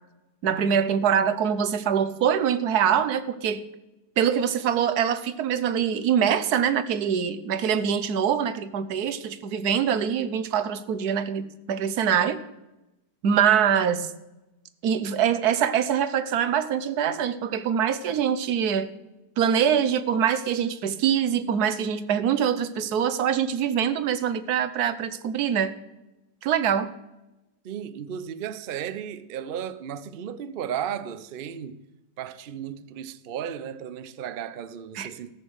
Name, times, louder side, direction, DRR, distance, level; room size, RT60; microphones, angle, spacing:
voice 1, 0.4-3.6 4.2-12.4 13.2-14.1 14.8-18.9 19.4-25.7 26.4-26.9 34.9-35.1, right 8 dB, 65° right, 1.3 m, -24 dB
voice 2, 27.6-31.8 32.2-35.3, right 9 dB, 90° right, 0.4 m, -34 dB
14.0 x 6.5 x 7.9 m
omnidirectional pair, 1.9 m